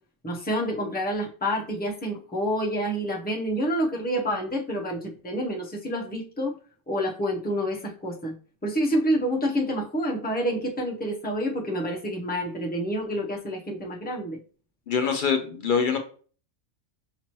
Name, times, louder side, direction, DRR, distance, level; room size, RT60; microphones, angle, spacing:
voice 1, 0.2-6.5 6.9-8.3 8.6-14.4, equal, 10° left, -1 dB, 0.5 m, -28 dB
voice 2, 14.9-16.0, left 6 dB, 65° left, 6 dB, 0.5 m, -24 dB
5.8 x 3.0 x 2.9 m, 0.42 s
omnidirectional pair, 1.3 m